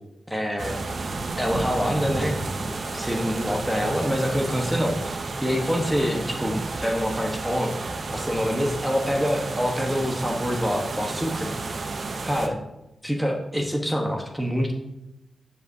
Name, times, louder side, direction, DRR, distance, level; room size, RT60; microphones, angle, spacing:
voice 1, 0.3-0.8 1.4-7.8 8.1-11.5 12.2-12.6 13.0-14.7, equal, 5° right, 2 dB, 1.1 m, -26 dB
sound 1, 0.6-12.5, right 3 dB, 60° right, 0.7 m, -32 dB
10.0 x 5.3 x 2.7 m, 0.95 s
cardioid pair, 70°, 0 cm